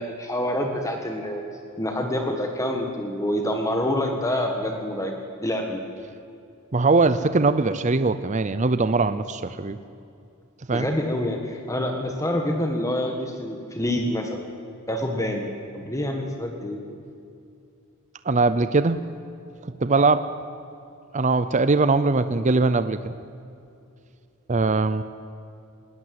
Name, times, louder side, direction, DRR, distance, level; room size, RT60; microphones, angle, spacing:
voice 1, 0.0-1.4 1.8-5.2 5.4-5.8 10.7-14.4 14.9-16.8, left 1 dB, 15° left, 3 dB, 1.7 m, -27 dB
voice 2, 6.7-9.8 10.7-10.9 18.3-19.0 19.8-20.3 21.1-23.2 24.5-25.0, right 3 dB, 35° right, 12 dB, 0.6 m, -21 dB
19.5 x 19.5 x 7.8 m, 2.6 s
head